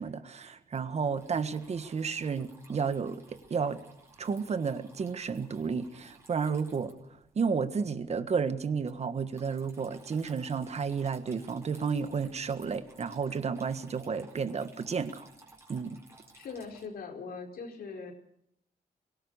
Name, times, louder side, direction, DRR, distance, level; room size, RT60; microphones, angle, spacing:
voice 1, 0.0-3.8 4.2-6.9 7.3-15.3 15.7-16.0, right 5 dB, 45° right, 11 dB, 1.5 m, -32 dB
Water tap faucet / Trickle dribble, 1.1-16.8, right 2 dB, 15° right, 4.5 m, -58 dB
voice 2, 16.3-18.1, left 5 dB, 85° left, 3 dB, 4.6 m, -41 dB
24.0 x 18.0 x 6.5 m, 0.72 s
wide cardioid pair, 140°, 15 cm